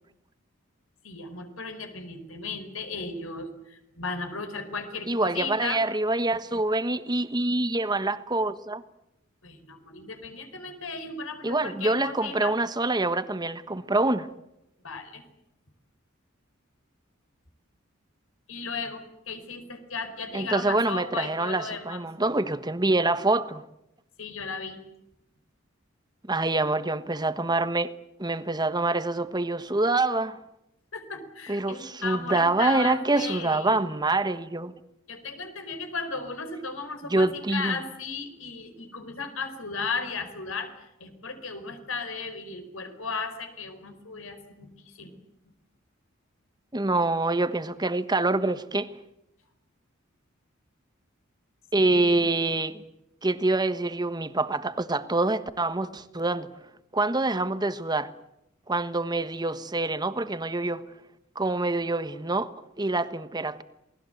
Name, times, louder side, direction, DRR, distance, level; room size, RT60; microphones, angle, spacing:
voice 1, 1.0-5.8 9.4-12.5 14.8-15.2 18.5-19.0 19.3-22.0 24.2-24.8 30.9-33.8 35.1-40.7 41.0-45.2 51.8-52.3, left 4 dB, 85° left, 4.7 m, -35 dB
voice 2, 5.1-8.8 11.4-14.3 20.3-23.6 26.3-27.9 28.2-30.4 31.5-34.7 37.1-37.8 46.7-48.9 51.7-52.8 53.2-56.5 56.9-58.1 58.7-60.8 61.3-62.5 62.8-63.6, right 2 dB, 20° right, 1.3 m, -26 dB
28.5 x 20.0 x 8.0 m
head